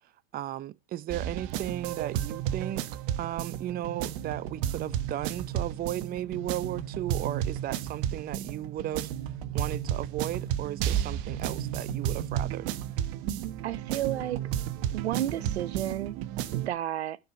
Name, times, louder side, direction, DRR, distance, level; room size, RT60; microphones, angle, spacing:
voice 1, 0.3-2.8 3.2-9.1 9.5-12.7, right 13 dB, 30° right, 0.7 m, -35 dB
sound 1, 1.1-16.7, right 10 dB, 55° right, 1.3 m, -32 dB
voice 2, 13.6-14.4 14.9-16.2 16.5-17.2, right 12 dB, 75° right, 0.9 m, -32 dB
11.5 x 5.0 x 6.9 m
hypercardioid pair, 100°, 32 cm